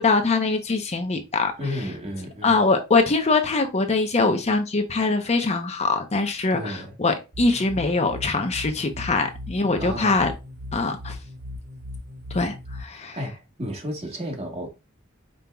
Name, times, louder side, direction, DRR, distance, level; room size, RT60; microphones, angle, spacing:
voice 1, 0.0-1.5 2.4-10.3 10.7-11.2 12.3-13.2, left 3 dB, 30° left, 0.7 m, -23 dB
voice 2, 1.6-2.6 6.5-6.9 9.8-10.2 12.9-14.7, equal, 30° right, 1.3 m, -32 dB
sound 1, 7.3-12.8, left 2 dB, 75° right, 3.2 m, -38 dB
5.3 x 4.4 x 2.3 m
head